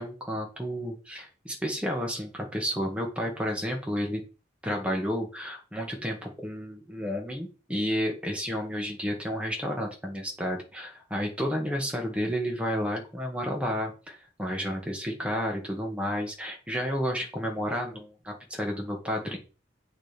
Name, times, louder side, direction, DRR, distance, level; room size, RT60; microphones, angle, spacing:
voice 1, 0.0-4.2 4.6-19.4, equal, 5° right, 0 dB, 1.7 m, -31 dB
8.9 x 3.5 x 4.5 m, 0.34 s
head